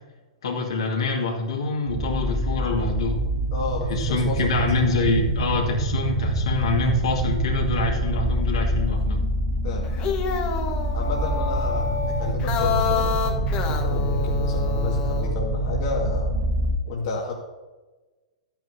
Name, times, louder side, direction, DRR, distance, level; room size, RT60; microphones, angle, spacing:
voice 1, 0.4-3.2 3.9-9.2, left 3 dB, 65° left, 0 dB, 2.2 m, -25 dB
sound 1, 1.9-16.8, right 1 dB, 30° right, 2.9 m, -25 dB
voice 2, 3.5-4.4 9.6-10.0 10.9-16.3 16.9-17.3, left 4 dB, 50° left, -2 dB, 1.8 m, -31 dB
sound 2, 9.8-15.3, left 6 dB, 35° left, 1.4 m, -28 dB
12.5 x 9.2 x 2.8 m, 1.2 s
figure-of-eight pair, 105°, 3 cm